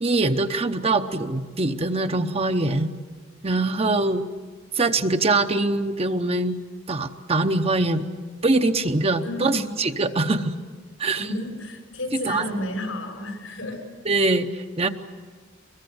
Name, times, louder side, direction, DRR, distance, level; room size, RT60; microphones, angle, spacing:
voice 1, 0.0-2.9 3.4-4.2 4.7-6.6 6.9-8.1 8.4-10.5 11.0-11.3 12.2-12.6 14.0-14.5 14.8-14.9, right 2 dB, 30° right, 7 dB, 0.9 m, -23 dB
voice 2, 9.2-9.7 11.2-13.8, left 1 dB, 90° left, 2 dB, 6.6 m, -31 dB
25.0 x 22.0 x 8.0 m, 1.5 s
head